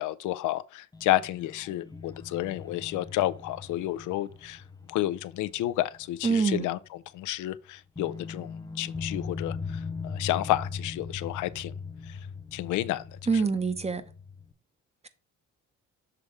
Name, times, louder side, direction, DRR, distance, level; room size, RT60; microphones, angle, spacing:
voice 1, 0.0-4.6 4.9-6.8 7.1-11.7 12.1-12.2 12.5-13.0, left 15 dB, 85° left, 0.5 m, -30 dB
sound 1, 0.9-6.3 6.6-6.8 7.9-14.5, left 5 dB, 15° left, 0.8 m, -40 dB
voice 2, 6.2-6.7 13.3-14.0, right 5 dB, 20° right, 0.7 m, -25 dB
6.9 x 3.5 x 4.7 m
cardioid pair, 90°, 30 cm